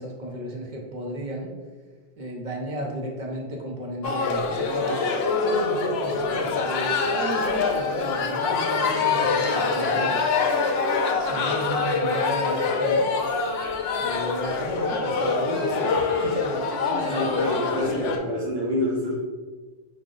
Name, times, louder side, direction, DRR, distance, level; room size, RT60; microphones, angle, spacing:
voice 1, 0.0-1.5 2.2-5.0 5.4-10.2 11.1-13.1 14.0-17.4, right 1 dB, 45° right, -1 dB, 0.8 m, -33 dB
sound 1, 4.0-18.2, left 4 dB, 65° left, 0.8 m, -25 dB
voice 2, 17.1-19.1, left 1 dB, 85° right, -7 dB, 1.5 m, -27 dB
4.9 x 2.1 x 3.8 m, 1.4 s
omnidirectional pair, 1.2 m